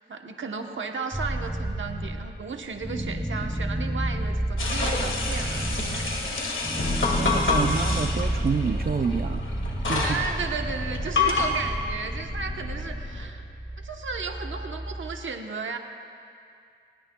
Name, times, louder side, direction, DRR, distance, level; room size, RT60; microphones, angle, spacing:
voice 1, 0.1-6.4 10.0-13.5 13.8-15.8, right 4 dB, 85° right, 4 dB, 1.0 m, -34 dB
sound 1, 1.1-15.1, right 1 dB, 5° right, 2.4 m, -31 dB
sound 2, 4.6-11.5, left 4 dB, 85° left, 1.9 m, -28 dB
sound 3, 6.8-13.3, left 2 dB, 45° left, 2.4 m, -38 dB
voice 2, 7.0-9.4 9.9-10.2, right 5 dB, 50° right, 7 dB, 0.6 m, -28 dB
23.5 x 19.5 x 2.3 m, 2.4 s
cardioid pair, 40°, 19 cm